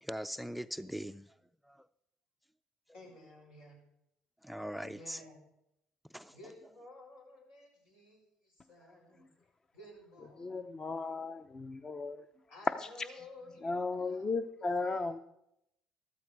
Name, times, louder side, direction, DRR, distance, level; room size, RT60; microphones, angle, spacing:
voice 1, 0.0-1.3 1.7-1.9 4.4-5.2 6.1-6.4, equal, ahead, 11 dB, 0.4 m, -41 dB
voice 2, 2.9-3.8 4.8-5.4 6.3-9.2 9.7-11.7 12.5-14.5 14.8-15.2, left 1 dB, 80° left, -2 dB, 6.1 m, -54 dB
voice 3, 10.4-12.2 12.8-12.9 13.6-15.2, left 3 dB, 30° left, 10 dB, 0.7 m, -36 dB
14.0 x 13.5 x 4.7 m, 0.81 s
supercardioid pair, 75°, 2 cm